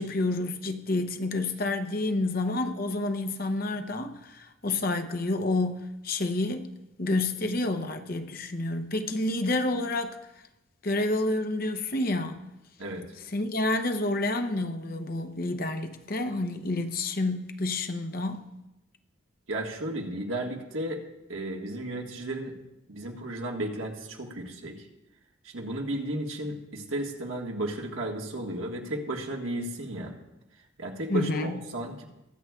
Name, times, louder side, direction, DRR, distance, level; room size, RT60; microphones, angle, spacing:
voice 1, 0.0-6.7 7.0-10.1 10.8-12.4 13.3-18.5 31.1-31.5, left 2 dB, 45° left, 0.7 m, -29 dB
voice 2, 19.5-21.0 21.3-22.5 22.9-24.8 25.4-30.1 30.8-32.0, right 1 dB, 75° right, 1.6 m, -34 dB
22.0 x 7.9 x 2.3 m
head